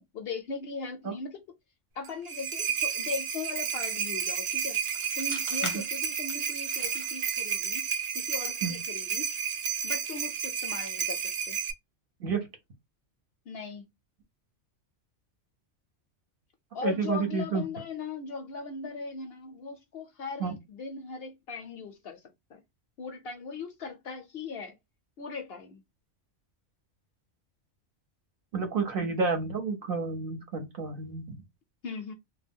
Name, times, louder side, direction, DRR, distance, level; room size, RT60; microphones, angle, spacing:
voice 1, 0.0-1.4 2.0-4.8 5.2-7.9 8.1-9.3 9.8-11.6 13.5-13.9 16.7-22.2 22.5-22.6 23.0-24.8 25.2-25.8 31.8-32.1, left 5 dB, 65° left, 0.7 m, -39 dB
sound 1, 2.0-11.7, right 8 dB, 70° right, 0.3 m, -31 dB
sound 2, 3.9-10.3, left 2 dB, 20° left, 0.5 m, -46 dB
voice 2, 16.8-17.6 20.4-20.5 28.5-31.4, right 4 dB, 55° right, 0.8 m, -30 dB
2.2 x 2.2 x 3.4 m
omnidirectional pair, 1.3 m